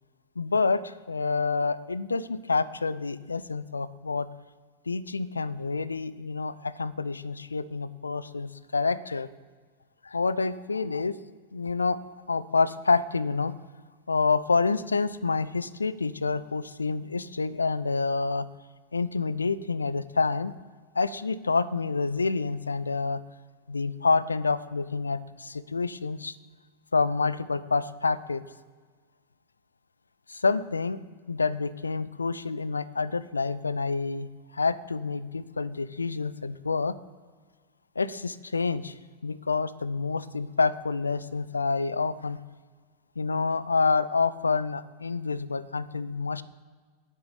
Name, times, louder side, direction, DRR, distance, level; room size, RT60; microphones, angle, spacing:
voice 1, 0.4-4.3 4.9-9.3 10.0-11.2 11.5-12.0 12.3-13.5 14.1-18.5 18.9-20.5 20.9-23.2 23.7-26.3 26.9-28.4 30.3-31.0 31.3-34.3 34.5-36.9 38.0-39.0 39.2-42.4 43.2-46.4, left 4 dB, 75° left, 17 dB, 0.4 m, -28 dB
9.6 x 7.3 x 6.9 m, 1.5 s
figure-of-eight pair, 90°, 0 cm